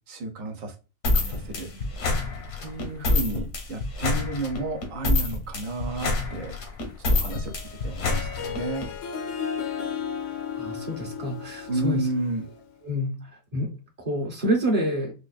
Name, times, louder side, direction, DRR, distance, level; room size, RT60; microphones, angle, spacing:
voice 1, 0.1-0.7 1.1-1.7 2.6-6.6 7.1-7.6 7.8-8.9 11.7-12.4, right 2 dB, 60° right, 1.2 m, -32 dB
sound 1, 1.0-8.9, left 2 dB, 85° left, 1.7 m, -26 dB
Harp, 7.2-12.7, left 7 dB, 65° left, 0.9 m, -35 dB
voice 2, 10.2-12.1 12.8-15.1, equal, 30° right, 0.8 m, -28 dB
4.8 x 2.5 x 2.3 m
omnidirectional pair, 1.6 m